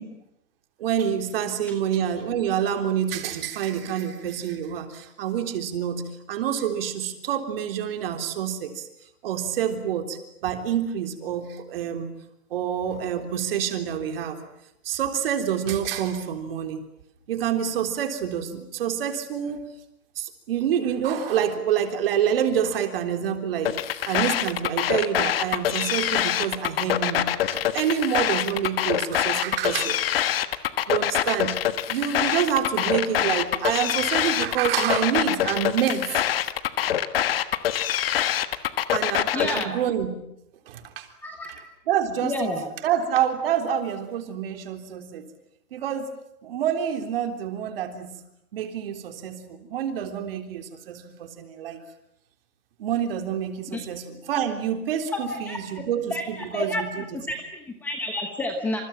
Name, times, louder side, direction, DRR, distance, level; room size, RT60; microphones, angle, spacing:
voice 1, 0.8-8.9 9.2-12.1 12.5-14.4 14.8-16.8 17.3-19.7 20.2-23.8 24.1-30.0 30.3-30.4 30.9-31.6 31.9-36.2 38.9-40.2 40.7-41.1 41.9-42.5 42.8-45.2 45.7-46.1 46.4-48.1 48.5-51.8 52.8-57.2, right 9 dB, 40° right, 6 dB, 3.6 m, -27 dB
Static Break, 23.6-39.6, left 11 dB, 40° left, 1.5 m, -25 dB
voice 2, 39.3-39.7 41.2-41.5 42.2-42.6 53.7-53.8 55.1-55.6 56.1-56.8 57.3-58.8, left 2 dB, 5° left, 3 dB, 1.0 m, -30 dB
28.0 x 28.0 x 7.4 m, 0.81 s
hypercardioid pair, 170°, 46 cm